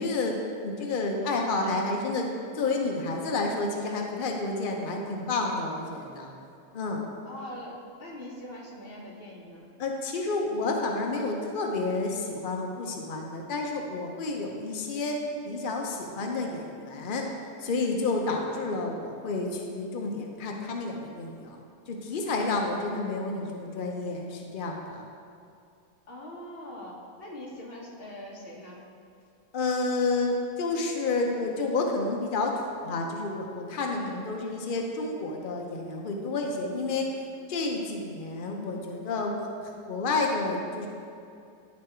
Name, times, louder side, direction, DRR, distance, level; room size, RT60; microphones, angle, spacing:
voice 1, 0.0-2.3 2.5-6.3 6.7-7.0 9.8-15.2 15.5-17.2 17.6-21.6 21.9-25.0 29.5-37.1 37.5-39.3 39.9-40.9, left 3 dB, 90° left, 1 dB, 0.4 m, -30 dB
voice 2, 7.2-9.7 26.1-28.8 33.9-34.1, left 1 dB, 40° left, -3 dB, 1.2 m, -42 dB
10.5 x 4.2 x 4.3 m, 2.5 s
omnidirectional pair, 1.9 m